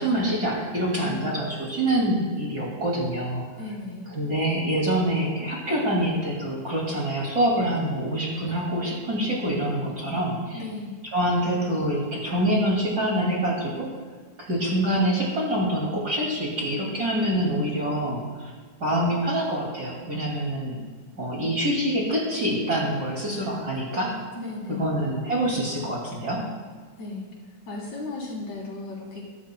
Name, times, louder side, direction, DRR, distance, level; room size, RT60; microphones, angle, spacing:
voice 1, 0.0-3.5 4.1-10.6 11.1-13.9 14.4-18.5 18.8-20.8 21.2-24.1 24.7-26.5, right 1 dB, 30° right, -3 dB, 2.8 m, -25 dB
voice 2, 3.6-4.1 10.5-11.0 24.3-25.0 27.0-27.3 27.7-29.3, left 2 dB, 65° left, -4 dB, 4.7 m, -35 dB
23.0 x 12.5 x 2.3 m, 1.5 s
omnidirectional pair, 3.5 m